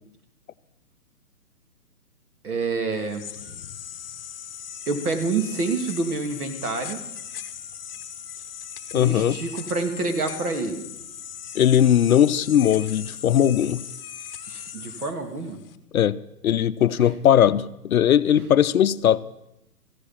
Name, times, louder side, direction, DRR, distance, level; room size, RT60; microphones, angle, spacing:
voice 1, 2.4-3.2 4.9-7.0 8.9-10.9 14.5-15.6, right 3 dB, 65° right, 2.6 m, -27 dB
sound 1, 2.9-15.8, left 9 dB, 35° left, 0.9 m, -38 dB
voice 2, 8.9-9.4 11.5-13.8 15.9-19.2, left 10 dB, 60° left, 0.6 m, -19 dB
14.5 x 9.8 x 7.3 m
hypercardioid pair, 160°, 48 cm